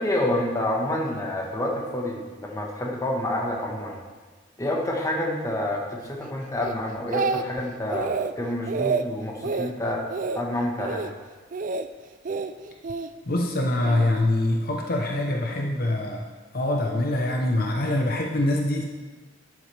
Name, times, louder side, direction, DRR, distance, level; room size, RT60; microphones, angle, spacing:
voice 1, 0.0-4.0 4.6-10.1 10.3-11.1, left 1 dB, 15° left, -1 dB, 1.3 m, -28 dB
Speech, 6.6-7.6 7.9-8.3 8.7-9.0 9.4-9.7 10.1-10.4 10.8-11.1 11.5-11.9 12.3-13.1 13.8-14.1, right 5 dB, 45° right, 0.4 m, -28 dB
voice 2, 13.3-16.2 16.5-18.8, left 1 dB, 50° left, 1 dB, 0.9 m, -24 dB
11.0 x 8.5 x 3.4 m, 1.4 s
head